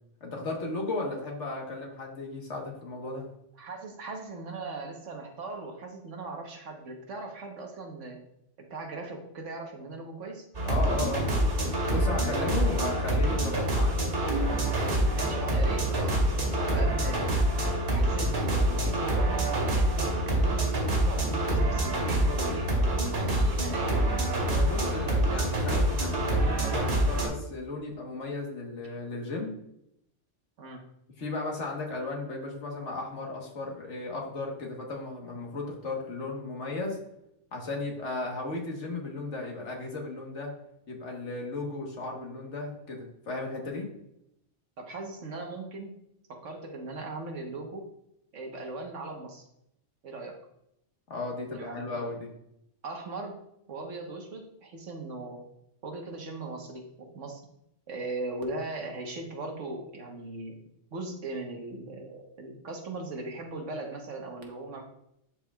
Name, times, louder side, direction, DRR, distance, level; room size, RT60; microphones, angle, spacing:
voice 1, 0.2-3.3 10.6-11.3 11.9-13.9 24.4-29.5 31.2-37.0 37.5-40.5 40.9-43.9 51.1-52.3, left 3 dB, 70° left, 0 dB, 1.7 m, -35 dB
voice 2, 3.6-8.2 8.7-10.5 12.6-12.8 15.1-17.3 17.9-22.7 23.1-24.0 24.7-25.4 30.6-30.8 44.8-45.9 46.3-47.9 48.3-49.4 50.0-50.4 51.5-52.1 52.8-53.4 53.7-55.4 55.8-57.4 57.9-60.6 60.9-64.8, right 3 dB, 80° right, 2 dB, 1.5 m, -39 dB
sound 1, 10.5-27.3, right 1 dB, 55° right, 2.2 m, -26 dB
11.5 x 4.8 x 2.3 m, 0.78 s
omnidirectional pair, 1.2 m